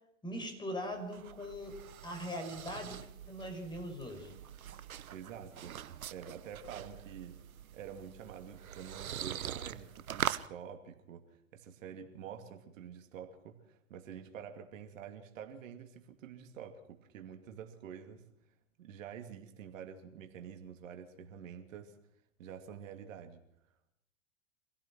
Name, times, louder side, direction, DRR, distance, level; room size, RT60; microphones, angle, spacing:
voice 1, 0.2-1.8 2.0-4.4, equal, 10° left, 4 dB, 5.3 m, -41 dB
sound 1, 0.8-10.5, right 10 dB, 85° right, 1.1 m, -43 dB
voice 2, 5.1-7.4 7.7-18.3 18.8-22.0 22.4-23.4, right 8 dB, 65° right, 6 dB, 2.7 m, -48 dB
26.0 x 16.5 x 6.1 m, 0.77 s
hypercardioid pair, 115°, 41 cm